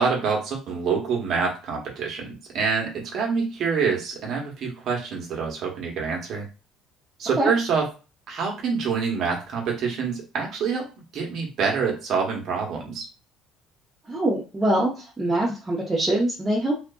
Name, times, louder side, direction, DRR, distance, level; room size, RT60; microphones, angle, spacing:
voice 1, 0.0-6.5 7.2-7.9 8.3-10.9 11.1-13.1, right 5 dB, 60° right, 0 dB, 1.1 m, -26 dB
voice 2, 14.1-16.7, right 1 dB, 20° right, -6 dB, 0.9 m, -23 dB
2.5 x 2.5 x 2.3 m, 0.32 s
supercardioid pair, 80°, 0 cm